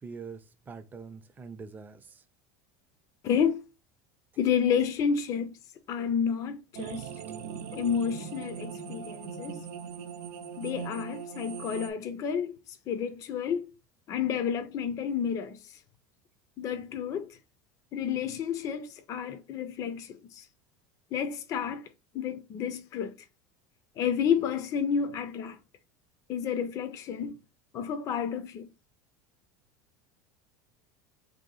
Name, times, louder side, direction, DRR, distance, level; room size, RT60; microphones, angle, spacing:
voice 1, 0.0-2.2 7.2-7.5, right 5 dB, 20° right, 0.4 m, -44 dB
voice 2, 3.2-3.6 4.4-5.6 5.9-7.1 7.7-9.6 10.6-13.7 14.1-15.8 16.6-17.4 17.9-20.5 21.1-21.9 22.1-23.1 24.0-25.6 26.3-27.4 27.7-28.7, left 7 dB, 40° left, 0.4 m, -30 dB
sound 1, 6.7-11.9, right 7 dB, 85° right, 0.6 m, -40 dB
3.1 x 2.7 x 4.0 m
supercardioid pair, 125°, 9 cm